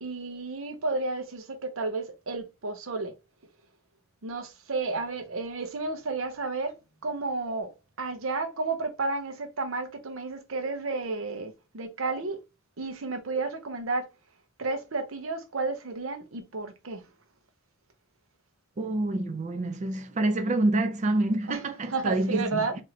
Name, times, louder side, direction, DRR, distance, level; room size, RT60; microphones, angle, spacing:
voice 1, 0.0-3.1 4.2-6.7 7.0-7.7 8.0-12.4 12.8-14.1 14.6-17.1 21.5-21.6 21.9-22.8, right 3 dB, 70° right, 0.8 m, -32 dB
voice 2, 18.8-22.7, right 2 dB, 35° right, 0.4 m, -27 dB
4.3 x 2.6 x 3.0 m
head